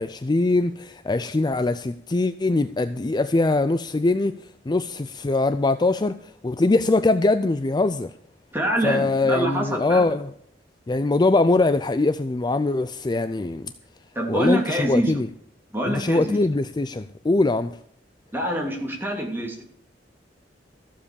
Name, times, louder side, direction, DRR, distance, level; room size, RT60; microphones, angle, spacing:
voice 1, 0.0-4.3 4.7-8.1 8.8-10.3 10.9-13.7 14.3-15.3 15.8-17.8, left 2 dB, 25° left, 0.4 m, -22 dB
voice 2, 8.5-10.1 14.1-15.2 15.7-16.4 18.3-19.6, equal, 10° right, 3.0 m, -25 dB
14.5 x 7.5 x 7.0 m
head